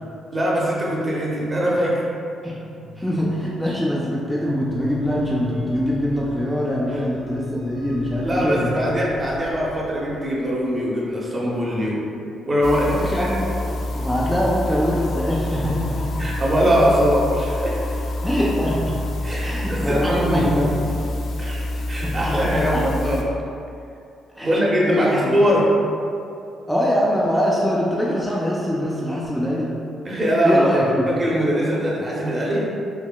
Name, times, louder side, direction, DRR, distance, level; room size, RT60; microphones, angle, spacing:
voice 1, 0.3-2.0 6.9-7.0 8.2-12.0 12.5-13.3 16.2-18.0 19.2-20.5 21.4-23.2 24.4-25.7 30.0-30.7 31.1-32.7, equal, 30° right, -4 dB, 0.8 m, -22 dB
sound 1, 2.7-11.0, left 2 dB, 75° right, 1.1 m, -40 dB
voice 2, 3.0-8.7 12.8-16.3 18.2-19.0 19.4-21.0 22.0-22.8 24.4-25.4 26.7-29.7 30.4-31.0, equal, 5° left, -6 dB, 0.4 m, -23 dB
sound 2, 12.6-23.2, left 1 dB, 60° left, 0.4 m, -27 dB
5.7 x 2.1 x 2.3 m, 2.6 s
cardioid pair, 90°, 0 cm